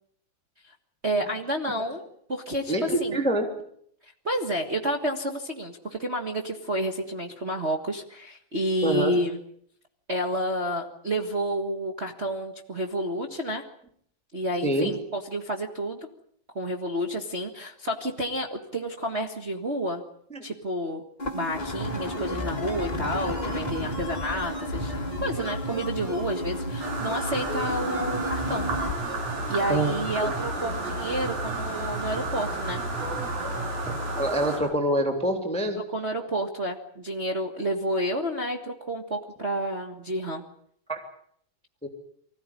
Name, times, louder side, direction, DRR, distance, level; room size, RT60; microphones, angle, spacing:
voice 1, 1.0-2.0 2.3-3.2 4.2-9.4 10.1-13.6 14.3-16.1 16.5-20.0 20.4-21.0 21.3-28.7 29.5-32.8 35.9-40.4, equal, 35° right, 2 dB, 1.0 m, -30 dB
voice 2, 2.7-3.5 8.8-9.2 14.6-14.9 20.3-20.4 29.7-29.9 30.2-30.3 33.9-35.8 40.9-41.0 41.8-41.9, right 1 dB, ahead, 4 dB, 2.7 m, -26 dB
sound 1, 21.2-28.9, left 1 dB, 25° left, 0.9 m, -33 dB
sound 2, 21.8-34.3 34.6-34.7, right 1 dB, 50° right, 8.0 m, -36 dB
sound 3, 26.8-34.6, right 3 dB, 85° right, 9.2 m, -33 dB
24.5 x 15.5 x 9.9 m, 0.67 s
omnidirectional pair, 4.0 m